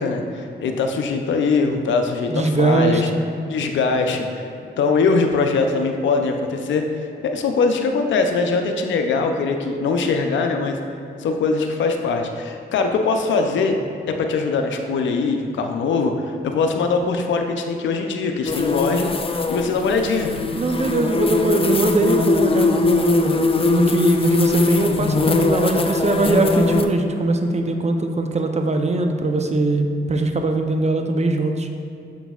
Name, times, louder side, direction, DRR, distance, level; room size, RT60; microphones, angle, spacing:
voice 1, 0.0-3.1 3.5-4.5 4.7-6.9 7.2-10.8 11.2-13.8 14.1-19.1 19.5-20.3, left 4 dB, 90° left, 4 dB, 0.5 m, -21 dB
voice 2, 2.3-3.2 20.5-31.7, right 2 dB, 35° right, 5 dB, 0.6 m, -21 dB
sound 1, 18.4-26.8, left 3 dB, 30° left, 0.4 m, -21 dB
6.8 x 6.0 x 2.3 m, 2.6 s
cardioid pair, 60°, 19 cm